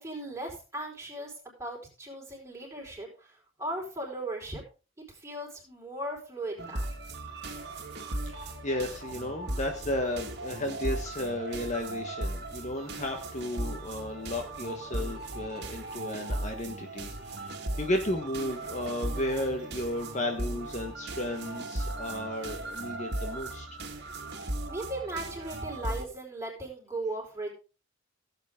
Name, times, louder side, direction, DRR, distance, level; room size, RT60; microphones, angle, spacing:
voice 1, 0.0-4.6 5.1-6.8 24.3-27.5, right 1 dB, 15° right, -1 dB, 4.7 m, -38 dB
sound 1, 6.6-26.1, right 2 dB, 55° right, 2.0 m, -37 dB
voice 2, 8.3-23.7, left 1 dB, 35° left, 4 dB, 1.4 m, -34 dB
17.0 x 8.3 x 3.7 m, 0.33 s
head